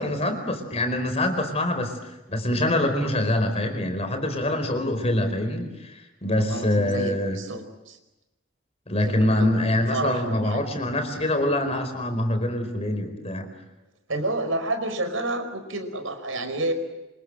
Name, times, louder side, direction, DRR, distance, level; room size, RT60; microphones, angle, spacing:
voice 1, 0.0-1.9 2.3-7.4 8.9-13.5, left 1 dB, 30° left, 7 dB, 4.6 m, -25 dB
voice 2, 6.4-8.0 9.0-9.5 9.9-10.6 14.1-16.7, right 2 dB, 85° right, 8 dB, 4.9 m, -29 dB
27.0 x 26.5 x 7.7 m, 1.0 s
head